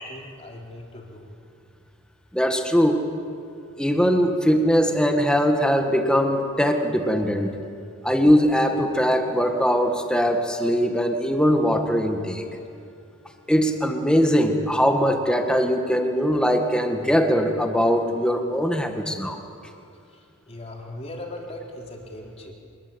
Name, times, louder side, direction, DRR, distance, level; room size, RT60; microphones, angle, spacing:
voice 1, 0.1-1.3 20.1-22.5, left 1 dB, 30° left, -1 dB, 4.1 m, -39 dB
voice 2, 2.3-3.0 3.8-7.5 8.0-12.5 13.5-19.4, equal, 5° left, 4 dB, 1.9 m, -21 dB
26.0 x 20.5 x 8.9 m, 2.5 s
head